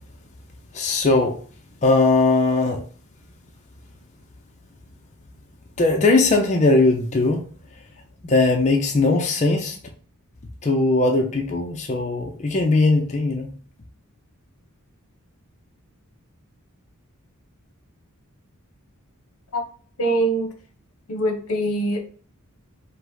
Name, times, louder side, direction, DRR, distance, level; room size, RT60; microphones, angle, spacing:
voice 1, 0.7-1.4 1.8-2.8 5.8-7.4 8.2-9.8 10.6-13.5, left 3 dB, 35° left, 1 dB, 0.6 m, -19 dB
voice 2, 20.0-20.5 21.1-22.0, right 1 dB, 70° left, 5 dB, 0.9 m, -23 dB
5.4 x 2.1 x 3.8 m, 0.43 s
head